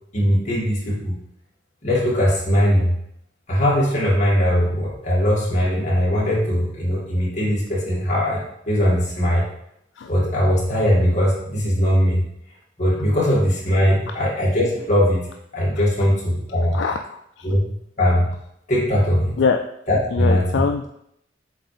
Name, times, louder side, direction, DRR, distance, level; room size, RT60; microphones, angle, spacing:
voice 1, 0.1-1.1 1.8-2.9 3.5-9.4 10.1-12.2 12.8-15.2 15.5-16.8 17.4-17.6 18.0-18.3 18.7-19.4 19.9-20.6, equal, 40° left, -7 dB, 2.3 m, -20 dB
voice 2, 16.7-17.5 19.4-19.6 20.1-20.9, left 5 dB, 65° left, 4 dB, 0.3 m, -23 dB
7.9 x 3.5 x 3.4 m, 0.76 s
head